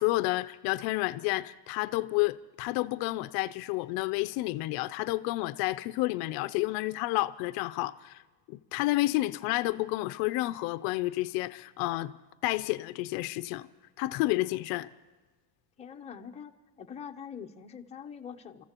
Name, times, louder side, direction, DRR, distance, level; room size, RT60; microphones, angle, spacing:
voice 1, 0.0-8.2 8.5-12.1 12.4-13.7 14.0-14.9, left 19 dB, 55° left, 0.5 m, -30 dB
voice 2, 15.8-18.6, left 7 dB, 15° left, 0.7 m, -44 dB
29.5 x 14.5 x 2.9 m
cardioid pair, 160°, 47 cm